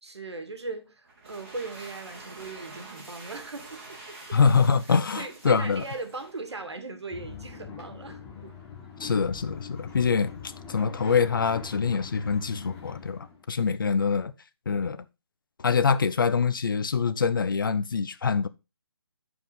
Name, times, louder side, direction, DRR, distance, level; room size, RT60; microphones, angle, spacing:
voice 1, 0.0-4.4 4.9-8.6, right 3 dB, 85° right, 2.2 m, -39 dB
sound 1, 1.0-6.8, right 2 dB, 30° right, 3.4 m, -46 dB
voice 2, 4.3-5.8 9.0-14.3 14.7-15.0 15.6-18.5, left 5 dB, 55° left, 0.7 m, -25 dB
sound 2, 7.1-13.4, left 6 dB, 10° left, 0.9 m, -43 dB
10.5 x 4.9 x 3.9 m
hypercardioid pair, 170°, 14 cm